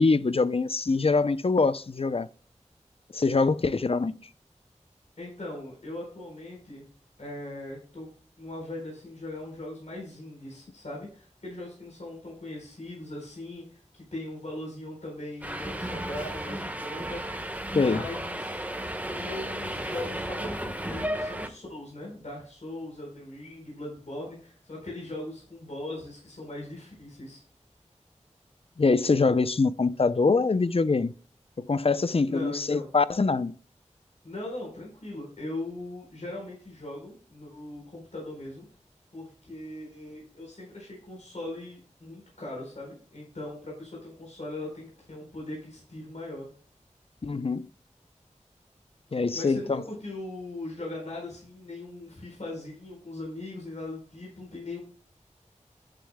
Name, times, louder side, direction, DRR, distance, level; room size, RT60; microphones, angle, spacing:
voice 1, 0.0-2.3 3.1-4.2 17.7-18.0 28.8-31.1 31.6-33.6 47.2-47.7 49.1-49.8, left 4 dB, 50° left, 0.5 m, -24 dB
voice 2, 5.2-6.8 7.2-8.1 8.4-18.6 19.1-27.4 32.3-32.9 34.2-38.6 39.1-46.5 49.3-54.8, left 1 dB, 70° left, 4.3 m, -40 dB
Subway metro underground, 15.4-21.5, right 1 dB, 10° right, 1.4 m, -34 dB
10.0 x 9.5 x 2.2 m
wide cardioid pair, 65°, 12 cm